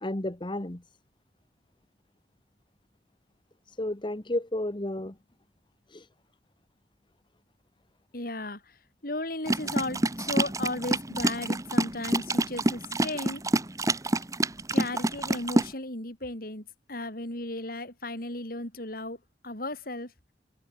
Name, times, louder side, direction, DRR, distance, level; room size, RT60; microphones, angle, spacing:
voice 1, 0.0-0.8 3.7-5.1 5.9-6.1, left 1 dB, 30° left, 1.4 m, -32 dB
voice 2, 8.1-8.8 9.0-13.4 14.7-19.2 19.4-20.1, left 2 dB, 55° left, 6.1 m, -35 dB
sound 1, 9.5-15.7, right 1 dB, 20° right, 1.5 m, -27 dB
head